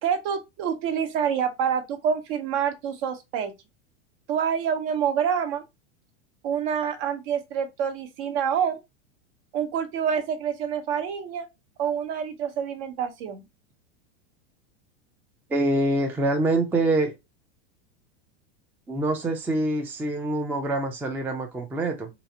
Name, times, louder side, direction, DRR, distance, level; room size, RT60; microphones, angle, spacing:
voice 1, 0.0-3.5 4.3-5.6 6.4-8.8 9.5-11.5 11.8-13.4, right 7 dB, 55° right, 1.0 m, -27 dB
voice 2, 15.5-17.1 18.9-22.1, right 2 dB, 5° right, 0.4 m, -25 dB
3.9 x 2.5 x 2.8 m
supercardioid pair, 135°, 35 cm